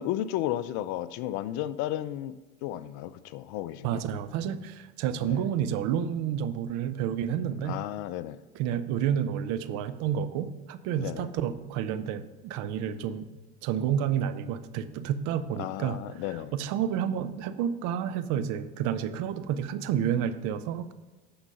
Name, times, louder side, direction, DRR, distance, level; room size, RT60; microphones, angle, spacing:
voice 1, 0.0-4.0 5.2-5.5 7.6-8.4 11.0-11.3 15.6-16.5, left 13 dB, 60° left, 14 dB, 0.6 m, -33 dB
voice 2, 3.8-7.8 8.5-13.3 13.6-16.0 16.3-20.9, right 9 dB, 60° right, 12 dB, 0.7 m, -30 dB
9.8 x 4.0 x 5.5 m, 1.2 s
hypercardioid pair, 85°, 32 cm